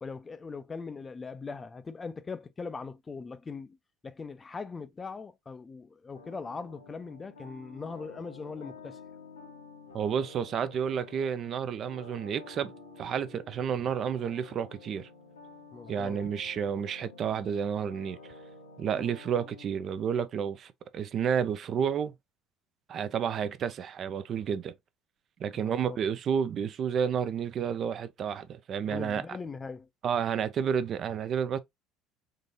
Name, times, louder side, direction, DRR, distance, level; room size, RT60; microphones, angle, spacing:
voice 1, 0.0-3.8 4.0-9.0 15.7-16.2 18.9-19.1 25.5-26.0 28.9-29.9, left 4 dB, 25° left, 0.4 m, -40 dB
sound 1, 6.1-19.7, left 4 dB, 80° left, 0.8 m, -50 dB
voice 2, 9.9-12.7 13.0-15.1 15.9-18.2 18.8-22.1 22.9-24.7 25.4-29.2 30.0-31.6, right 7 dB, 40° right, 0.4 m, -30 dB
3.7 x 2.8 x 2.6 m
figure-of-eight pair, 60°, 0 cm